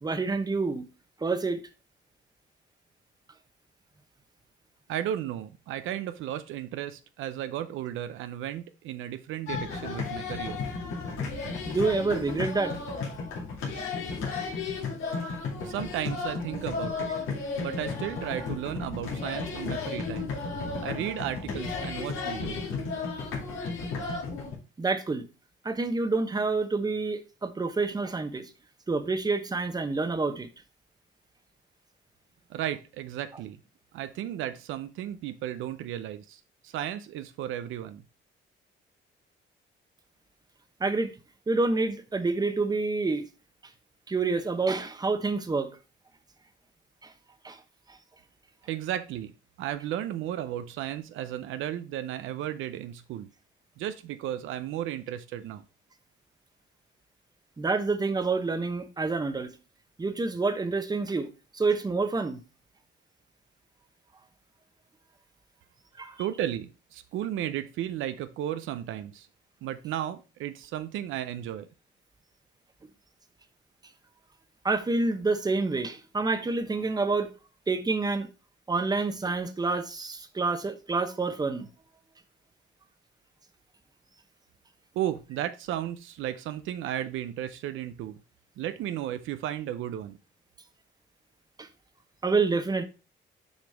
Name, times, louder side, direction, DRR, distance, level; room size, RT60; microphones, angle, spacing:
voice 1, 0.0-0.9 1.2-1.6 11.7-12.7 24.8-25.2 25.6-28.5 28.9-30.5 40.8-41.1 41.5-43.2 44.1-45.7 47.0-47.1 47.4-47.6 47.9-48.0 57.6-59.5 60.0-61.3 61.5-62.4 66.0-66.2 74.6-77.3 77.7-78.3 78.7-81.7 91.6-91.7 92.2-92.9, right 3 dB, 20° right, 0.9 m, -28 dB
voice 2, 4.9-10.6 15.6-17.1 17.6-20.4 20.8-22.6 32.5-33.6 33.9-38.0 48.7-49.3 49.6-53.3 53.8-55.6 66.2-69.3 69.6-71.7 84.9-88.2 88.6-90.2, right 11 dB, 85° right, 0.6 m, -34 dB
sound 1, 9.5-24.6, left 4 dB, 90° left, 2.2 m, -33 dB
6.5 x 5.0 x 3.4 m
cardioid pair, 90°, 20 cm